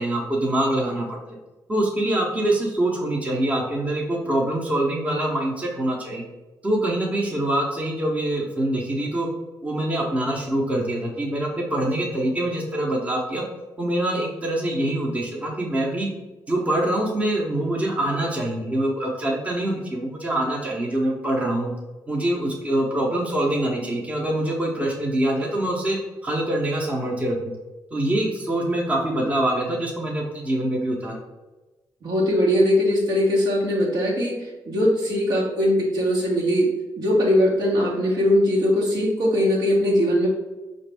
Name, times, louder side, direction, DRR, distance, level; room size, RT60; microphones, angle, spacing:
voice 1, 0.0-1.4 1.7-6.3 6.6-9.3 9.6-13.4 13.8-16.1 16.5-21.7 22.1-27.5 27.9-31.2, right 1 dB, 20° right, -2 dB, 0.8 m, -24 dB
voice 2, 32.0-36.7 37.0-40.3, left 1 dB, 75° right, -4 dB, 1.3 m, -20 dB
4.9 x 2.5 x 3.4 m, 1.1 s
cardioid pair, 95°, 7 cm